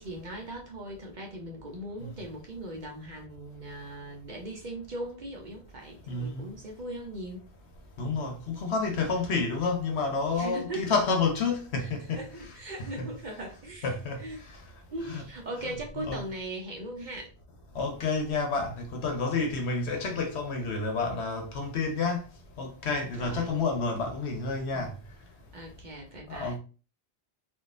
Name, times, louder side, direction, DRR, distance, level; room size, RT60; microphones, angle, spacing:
voice 1, 0.0-7.5 10.3-10.9 11.8-14.4 14.9-17.3 23.0-23.5 24.7-24.9 25.5-26.6, right 1 dB, 45° right, 0.8 m, -39 dB
voice 2, 6.1-6.5 8.0-12.2 13.0-13.1 13.8-14.2 15.1-15.2 16.1-16.2 17.7-22.3 22.6-24.9 26.3-26.6, left 4 dB, 75° left, 1.1 m, -29 dB
3.6 x 2.5 x 2.5 m
omnidirectional pair, 1.1 m